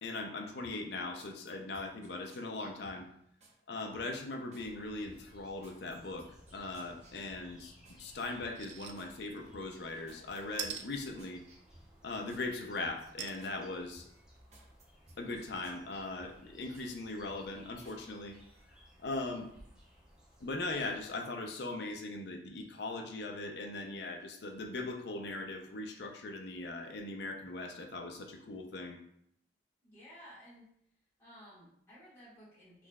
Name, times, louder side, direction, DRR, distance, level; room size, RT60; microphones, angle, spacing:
voice 1, 0.0-3.1 3.7-7.7 8.0-11.4 12.0-14.0 15.2-18.4 19.0-19.5 20.4-29.0, left 2 dB, 70° left, 4 dB, 0.5 m, -40 dB
sound 1, 0.6-3.6 4.0-4.7 5.0-8.0 8.4-9.1 9.5-12.5 12.8-13.6 13.9-16.9 17.3-18.0 18.4-18.6, right 1 dB, 40° right, 0.7 m, -61 dB
sound 2, 4.6-21.1, equal, 5° right, 0.7 m, -60 dB
sound 3, 8.5-8.9 9.4-9.5 10.6-10.8 13.2-13.4 14.0-14.1 14.3-14.4, right 8 dB, 85° right, 0.4 m, -40 dB
voice 2, 29.8-30.7 31.2-32.9, equal, 15° left, -11 dB, 1.3 m, -55 dB
3.7 x 3.1 x 2.3 m, 0.71 s
head